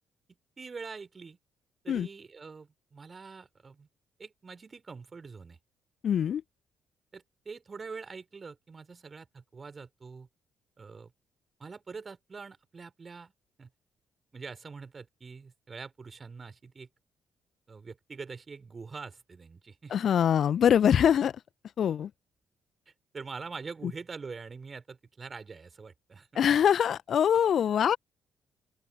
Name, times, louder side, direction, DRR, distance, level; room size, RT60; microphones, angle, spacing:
voice 1, 0.6-1.4 1.8-3.9 4.2-5.6 7.1-10.3 10.8-11.1 11.6-13.3 13.6-13.7 14.3-16.9 17.7-20.1 23.1-26.5, right 4 dB, 35° right, 5.0 m, -44 dB
voice 2, 6.0-6.4 19.9-21.4 21.8-22.1 26.3-28.0, left 9 dB, 50° left, 1.3 m, -23 dB
open air
figure-of-eight pair, 40°, 0 cm